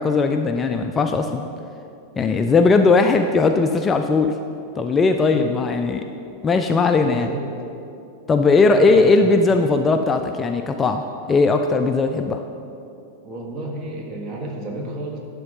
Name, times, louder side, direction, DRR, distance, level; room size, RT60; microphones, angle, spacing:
voice 1, 0.0-1.4 2.2-4.3 4.8-6.0 6.4-7.3 8.3-12.4, left 3 dB, 20° left, 6 dB, 0.3 m, -18 dB
voice 2, 7.0-7.5 8.8-9.3 13.2-15.2, right 2 dB, 35° right, 1 dB, 1.3 m, -31 dB
11.0 x 3.8 x 5.4 m, 2.7 s
figure-of-eight pair, 90°, 0 cm